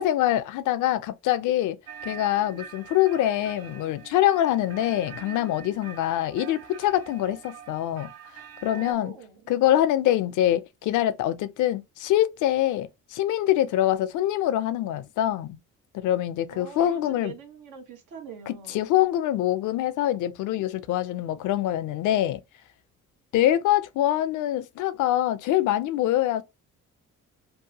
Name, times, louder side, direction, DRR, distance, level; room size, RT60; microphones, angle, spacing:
voice 1, 0.0-1.8 2.0-8.1 8.6-9.1 9.5-15.6 15.9-17.3 18.5-22.4 23.3-26.4, left 13 dB, 80° left, 0.5 m, -24 dB
sound 1, 1.9-8.9, right 8 dB, 55° right, 0.5 m, -44 dB
voice 2, 8.7-9.4 16.5-18.9, right 6 dB, 85° right, 1.0 m, -43 dB
2.7 x 2.2 x 2.7 m
cardioid pair, 90°, 30 cm